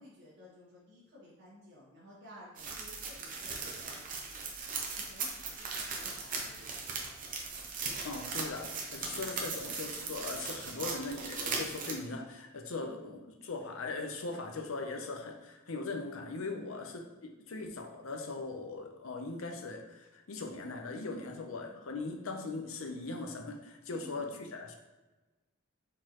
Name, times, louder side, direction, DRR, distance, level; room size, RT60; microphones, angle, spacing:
voice 1, 0.0-7.1 10.2-10.4 13.0-13.2 16.6-16.8 21.2-21.8 23.9-24.5, left 1 dB, 55° right, -7 dB, 1.4 m, -56 dB
sound 1, 2.6-11.9, right 4 dB, 40° right, 0.7 m, -38 dB
voice 2, 8.0-24.7, left 3 dB, 75° left, 3 dB, 0.6 m, -40 dB
4.4 x 4.1 x 3.0 m, 1.1 s
head